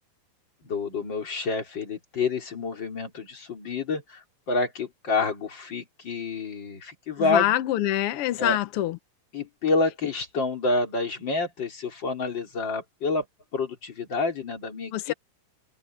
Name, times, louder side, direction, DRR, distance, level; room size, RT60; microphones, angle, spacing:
voice 1, 0.6-7.5 8.4-8.6 9.3-13.3 13.5-15.1, left 3 dB, 35° left, 3.8 m, -28 dB
voice 2, 7.2-9.0 14.9-15.1, left 14 dB, 85° left, 1.3 m, -25 dB
omnidirectional pair, 3.7 m